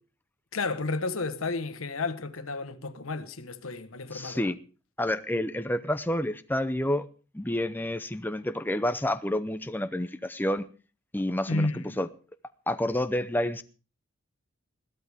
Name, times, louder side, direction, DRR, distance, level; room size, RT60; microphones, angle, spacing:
voice 1, 0.5-4.4 11.5-11.9, left 3 dB, 85° left, 1.4 m, -32 dB
voice 2, 4.1-4.6 5.0-7.1 7.3-10.7 11.1-11.7 12.0-12.1 12.7-13.6, left 1 dB, 10° left, 0.6 m, -29 dB
21.0 x 14.5 x 3.6 m
head